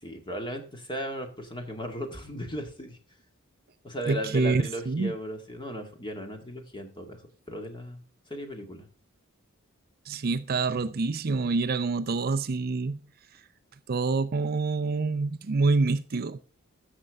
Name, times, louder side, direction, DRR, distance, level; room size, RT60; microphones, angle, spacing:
voice 1, 0.0-3.0 3.8-7.2 7.5-8.0 8.3-8.9, equal, 20° left, 1.9 m, -36 dB
voice 2, 4.1-5.1 10.1-13.0 13.9-16.4, right 3 dB, 45° right, 0.5 m, -26 dB
13.5 x 6.7 x 3.5 m
head